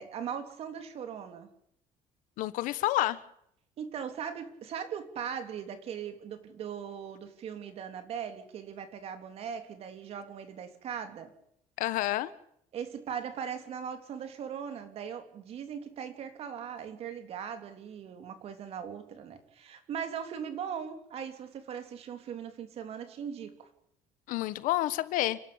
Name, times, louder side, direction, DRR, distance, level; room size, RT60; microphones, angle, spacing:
voice 1, 0.0-1.5 3.8-11.3 12.7-23.7, right 7 dB, 50° right, 3.3 m, -39 dB
voice 2, 2.4-3.2 11.8-12.3 24.3-25.4, left 15 dB, 80° left, 1.4 m, -29 dB
29.5 x 12.0 x 8.9 m
cardioid pair, 165°, 14 cm